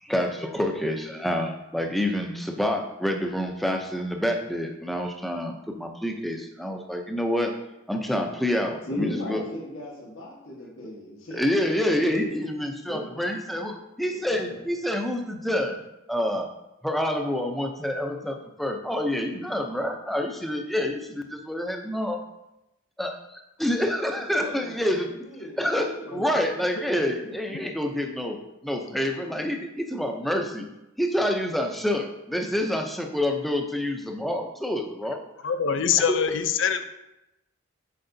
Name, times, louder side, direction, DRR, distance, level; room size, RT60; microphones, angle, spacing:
voice 1, 0.0-7.5 7.9-9.4 11.3-13.7 14.0-15.8 16.1-16.5 16.8-22.2 23.0-25.1 25.6-29.6 29.9-30.6 31.0-32.0 32.3-35.2 36.1-36.2, left 1 dB, ahead, 3 dB, 0.5 m, -27 dB
voice 2, 8.9-11.5 11.9-12.4 12.9-13.2 14.1-14.6 24.1-26.4 27.2-27.7 29.4-29.5, left 1 dB, 80° left, -5 dB, 1.6 m, -37 dB
voice 3, 35.4-36.8, left 7 dB, 65° left, 9 dB, 0.5 m, -24 dB
7.7 x 4.7 x 2.7 m, 0.93 s
head